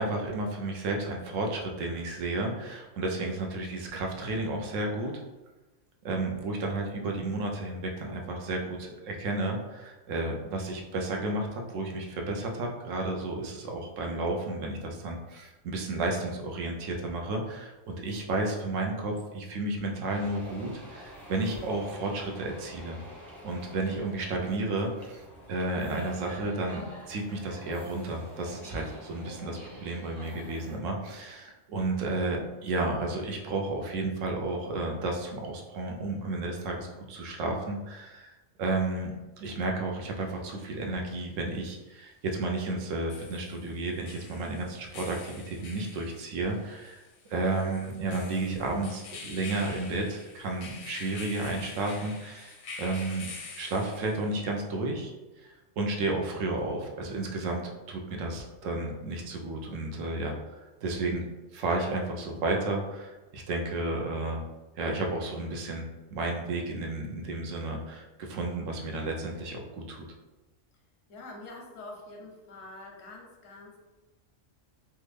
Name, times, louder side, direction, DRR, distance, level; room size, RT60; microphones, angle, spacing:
voice 1, 0.0-5.1 6.0-23.0 23.4-38.3 38.6-47.0 47.3-53.3 53.5-61.2 61.5-64.4 64.8-70.0, right 2 dB, 85° right, 1 dB, 1.0 m, -32 dB
sound 1, 20.1-30.8, equal, ahead, 0.5 m, -47 dB
sound 2, 40.2-40.3 42.8-54.4, left 4 dB, 60° left, 0.6 m, -46 dB
voice 2, 71.1-73.8, left 2 dB, 90° left, 0 dB, 1.1 m, -45 dB
3.4 x 2.1 x 3.3 m, 1.1 s
omnidirectional pair, 1.3 m